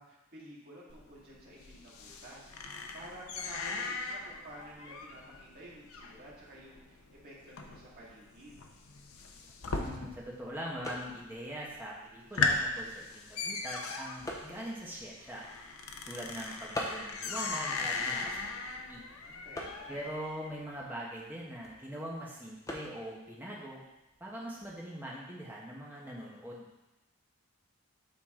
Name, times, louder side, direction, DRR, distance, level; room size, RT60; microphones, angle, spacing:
voice 1, 0.0-8.6 19.1-20.0, right 1 dB, 45° right, -6 dB, 2.0 m, -52 dB
sound 1, 0.9-10.5 10.7-11.3 11.7-11.8 12.1-20.5, left 4 dB, 75° left, 0.7 m, -38 dB
sound 2, 9.3-24.8, left 1 dB, 15° left, 0.8 m, -48 dB
voice 2, 9.6-15.4 16.0-19.0 19.9-23.8 24.2-26.7, equal, 10° right, -5 dB, 1.2 m, -42 dB
8.8 x 4.1 x 3.8 m, 1.0 s
head